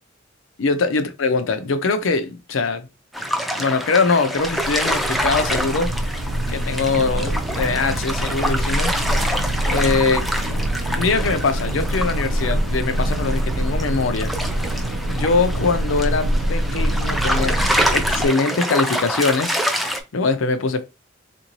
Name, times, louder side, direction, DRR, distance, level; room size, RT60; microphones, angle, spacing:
voice 1, 0.6-2.9 3.6-5.9 6.5-8.9 9.7-10.2 10.9-14.3 15.1-17.6 17.9-19.6 20.1-20.8, left 4 dB, 75° left, 0.5 m, -22 dB
sound 1, 3.1-20.0, equal, ahead, 0.4 m, -26 dB
sound 2, 4.4-18.3, right 1 dB, 80° right, 0.5 m, -25 dB
3.6 x 2.6 x 3.0 m
head